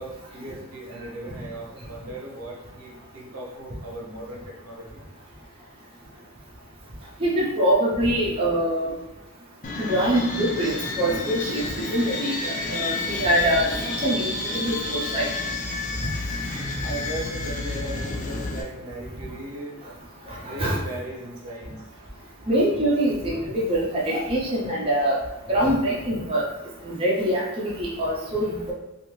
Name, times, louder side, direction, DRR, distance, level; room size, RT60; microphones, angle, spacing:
voice 1, 0.0-5.1 16.8-19.8 20.4-21.8, right 1 dB, 85° right, -2 dB, 0.8 m, -37 dB
voice 2, 7.2-8.9 9.8-11.6 11.9-15.3 20.3-20.8 22.5-25.2 25.5-26.4 26.8-28.7, right 1 dB, 25° right, -6 dB, 0.6 m, -24 dB
sound 1, 9.6-18.6, left 2 dB, 35° left, 0.4 m, -30 dB
2.6 x 2.5 x 3.1 m, 1.0 s
head